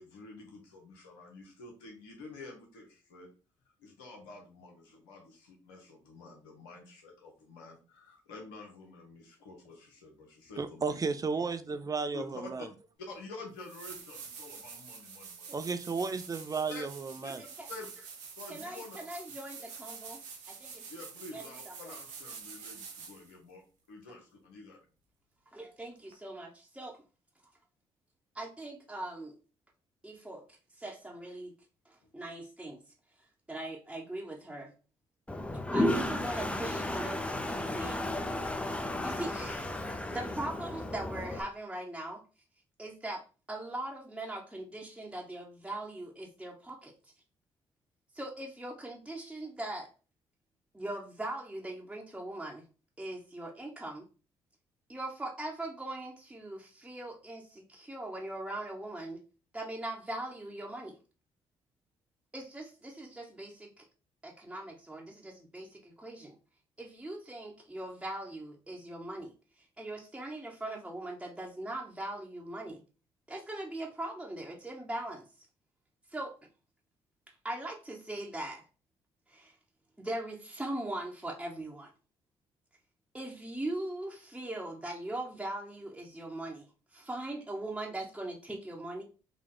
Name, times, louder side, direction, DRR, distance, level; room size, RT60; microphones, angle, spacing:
voice 1, 0.0-3.3 3.8-11.0 12.1-12.4 13.0-15.5 16.7-16.8 17.2-17.3 17.7-17.9 18.4-19.0 20.9-23.6 23.9-24.8, left 3 dB, 85° left, 1 dB, 0.9 m, -48 dB
voice 2, 10.6-12.7 15.5-17.4, right 4 dB, 30° right, 12 dB, 0.5 m, -33 dB
sound 1, 13.1-13.2 13.6-23.3 26.1-26.2, right 6 dB, 75° right, 0.9 m, -47 dB
voice 3, 17.4-17.7 18.5-20.2 20.5-20.8 21.3-21.9 25.5-27.0 28.3-29.3 30.0-31.5 31.8-32.8 33.5-34.7 35.7-38.0 39.0-42.2 42.8-43.2 43.5-47.1 48.1-49.9 50.7-52.6 53.0-54.1 54.9-59.2 59.5-61.0 62.3-63.8 64.2-66.4 66.8-72.8 73.3-75.2 76.1-76.4 77.3-78.6 79.3-79.5 80.0-81.9 83.1-86.7 86.9-89.0, right 1 dB, 10° right, -2 dB, 0.9 m, -40 dB
Toilet flush, 35.3-41.4, left 1 dB, 10° left, 0.6 m, -33 dB
3.8 x 2.3 x 3.7 m, 0.34 s
hypercardioid pair, 50°, 12 cm